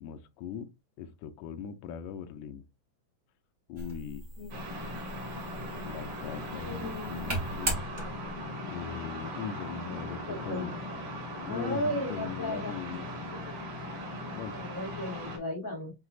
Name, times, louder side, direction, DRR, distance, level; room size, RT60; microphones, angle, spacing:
voice 1, 0.0-0.7 1.0-2.6 3.7-4.2 5.9-7.8 8.6-10.8 11.4-13.1 14.3-14.5, left 8 dB, 80° left, 1.6 m, -40 dB
sound 1, 3.8-8.5, right 1 dB, 35° right, 0.9 m, -38 dB
sound 2, 4.5-15.4, equal, 75° right, 4.0 m, -39 dB
voice 2, 6.6-7.6 9.8-10.0 10.3-10.8 11.4-12.7 14.4-15.9, left 1 dB, 30° left, 1.8 m, -36 dB
7.6 x 2.9 x 2.4 m
omnidirectional pair, 3.9 m